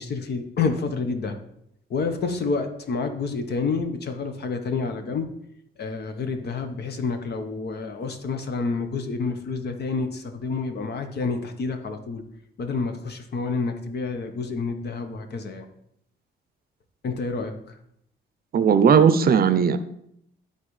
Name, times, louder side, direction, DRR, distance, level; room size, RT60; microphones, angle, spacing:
voice 1, 0.0-1.4 1.9-5.3 5.8-12.2 12.6-15.7 17.0-17.8, left 4 dB, 55° left, 7 dB, 1.1 m, -29 dB
voice 2, 18.5-19.8, right 7 dB, 50° right, 12 dB, 0.6 m, -17 dB
12.0 x 4.1 x 3.2 m, 0.75 s
cardioid pair, 90°, 20 cm